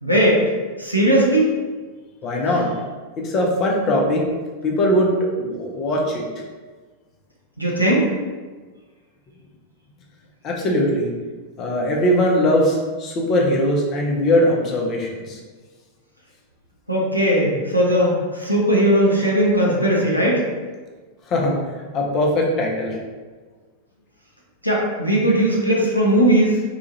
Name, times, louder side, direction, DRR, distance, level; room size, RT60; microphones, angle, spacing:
voice 1, 0.0-0.4 0.8-1.6 7.6-8.1 16.9-20.4 24.6-26.6, right 1 dB, 90° right, -4 dB, 0.6 m, -18 dB
voice 2, 2.2-2.7 3.2-4.3 4.6-6.2 10.4-11.1 11.6-15.4 21.3-21.6 21.9-23.0, left 1 dB, 35° left, -1 dB, 0.6 m, -20 dB
2.8 x 2.4 x 2.7 m, 1.4 s
figure-of-eight pair, 90°, 0 cm